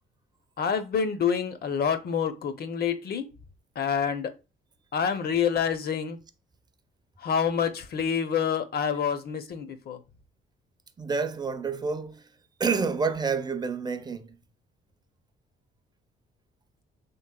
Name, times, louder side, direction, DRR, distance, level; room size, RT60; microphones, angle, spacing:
voice 1, 0.6-3.3 3.8-4.3 4.9-6.2 7.2-10.0, left 7 dB, 55° left, 0.6 m, -27 dB
voice 2, 11.0-12.3 12.6-14.4, right 5 dB, 20° right, 0.4 m, -28 dB
3.1 x 3.0 x 2.2 m
cardioid pair, 90°, 20 cm